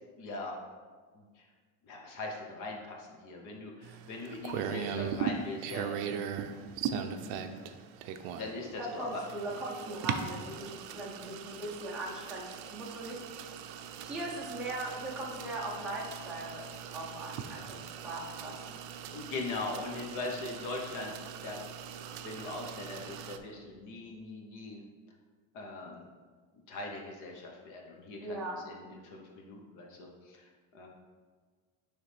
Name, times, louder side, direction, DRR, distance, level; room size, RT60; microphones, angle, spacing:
voice 1, 0.2-0.5 1.1-1.5 1.8-6.5 7.0-7.6 8.4-9.2 19.1-21.6 22.2-24.8 25.5-26.1 26.7-30.9, left 2 dB, 50° left, 0 dB, 0.8 m, -41 dB
sound 1, 3.8-23.4, right 8 dB, 65° right, 0.5 m, -40 dB
voice 2, 8.8-13.2 14.0-18.7 28.2-28.6, right 1 dB, ahead, -5 dB, 0.5 m, -39 dB
9.4 x 3.2 x 3.2 m, 1.5 s
cardioid pair, 175°, 40 cm